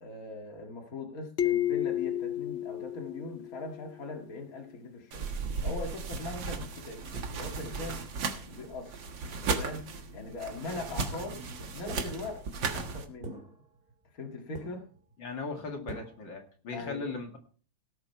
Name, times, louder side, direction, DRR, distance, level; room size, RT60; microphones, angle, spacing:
voice 1, 0.0-5.3 5.6-8.0 8.5-8.9 9.6-13.4 14.1-14.8 16.7-17.1, left 3 dB, 45° left, 2 dB, 2.4 m, -41 dB
sound 1, 1.4-3.9, left 12 dB, 90° left, 0.5 m, -31 dB
sound 2, 5.1-13.1, right 4 dB, 70° right, 2.2 m, -36 dB
sound 3, 11.9-12.6 13.2-14.3 14.5-15.1 15.9-16.4, right 2 dB, 30° right, 2.1 m, -45 dB
voice 2, 15.2-17.4, left 4 dB, 70° left, 2 dB, 2.8 m, -38 dB
18.0 x 7.6 x 4.6 m, 0.41 s
omnidirectional pair, 2.2 m